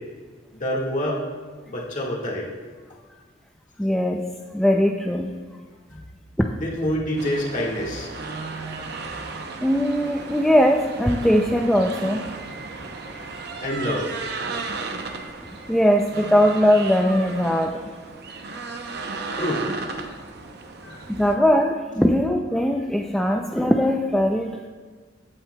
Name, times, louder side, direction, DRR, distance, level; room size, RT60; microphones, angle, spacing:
voice 1, 0.6-1.2 1.7-2.5 5.9-6.0 6.6-8.1 13.6-14.1 19.4-19.6 20.8-21.0, equal, 40° left, -3 dB, 1.7 m, -26 dB
voice 2, 3.8-5.4 6.4-6.5 9.6-12.8 13.1-13.5 14.9-17.8 18.5-18.6 20.8-24.7, equal, ahead, 2 dB, 0.3 m, -21 dB
sound 1, 7.2-21.3, right 3 dB, 60° right, 0.7 m, -35 dB
15.0 x 8.7 x 2.2 m, 1.5 s
head